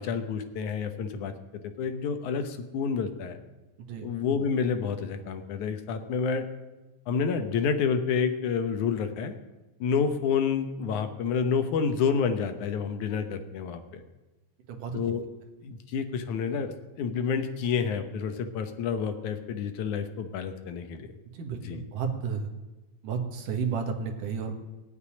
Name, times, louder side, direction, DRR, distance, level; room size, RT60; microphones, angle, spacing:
voice 1, 0.0-1.3 1.6-3.4 4.0-6.5 7.1-9.4 9.8-14.0 14.9-15.2 15.6-21.1 21.7-21.8, left 6 dB, 75° left, 8 dB, 2.5 m, -29 dB
voice 2, 14.7-15.0 21.3-22.5 23.0-24.6, right 6 dB, 90° right, 4 dB, 3.2 m, -32 dB
17.5 x 8.2 x 10.0 m, 1.1 s
omnidirectional pair, 3.6 m